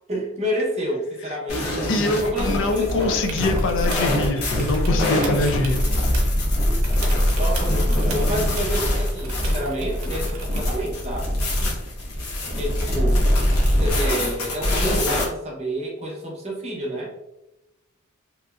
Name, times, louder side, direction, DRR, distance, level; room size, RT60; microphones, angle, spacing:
voice 1, 0.1-1.9 2.2-3.2 6.7-6.8 7.3-11.3 12.6-13.3 13.8-17.1, equal, 30° right, -3 dB, 0.6 m, -29 dB
sound 1, 1.5-15.2, left 1 dB, 85° left, 0.7 m, -23 dB
voice 2, 1.9-5.8, left 2 dB, 55° left, 6 dB, 0.3 m, -24 dB
sound 2, 2.9-4.1 4.5-6.5 6.8-10.9 12.8-12.9, right 2 dB, 80° right, 0.6 m, -35 dB
2.9 x 2.5 x 2.3 m, 0.93 s
head